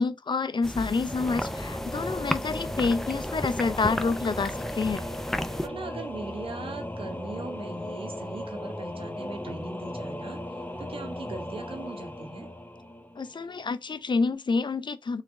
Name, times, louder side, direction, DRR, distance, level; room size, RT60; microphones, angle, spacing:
voice 1, 0.0-5.0 13.2-15.2, left 4 dB, 60° left, 0.5 m, -28 dB
sound 1, 0.6-5.7, equal, 5° left, 0.5 m, -34 dB
Singing / Musical instrument, 1.0-13.6, left 1 dB, 20° left, 0.9 m, -37 dB
voice 2, 5.6-10.4 10.8-12.5, right 3 dB, 90° right, 0.8 m, -40 dB
3.5 x 3.2 x 3.5 m
cardioid pair, 40°, 9 cm